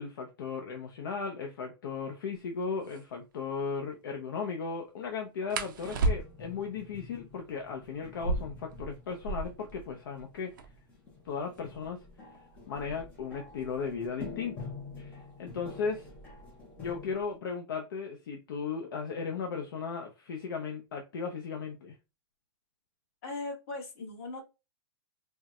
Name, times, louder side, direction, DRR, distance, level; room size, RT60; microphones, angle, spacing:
voice 1, 0.0-10.5 11.2-12.0 12.7-14.7 15.0-16.1 16.8-21.9, left 5 dB, 55° left, 0.6 m, -36 dB
sound 1, 2.3-2.4 2.8-3.0 5.5-6.6 8.1-9.7 10.0-10.1 10.3-10.9 11.5-14.1 15.1-15.4 15.8-16.3 16.6-17.3, right 2 dB, 50° right, 0.5 m, -34 dB
sound 2, 5.5-17.1, left 3 dB, 10° left, 0.5 m, -48 dB
voice 2, 23.2-24.4, left 2 dB, 35° left, 1.2 m, -38 dB
4.4 x 2.1 x 2.3 m
supercardioid pair, 180°, 14 cm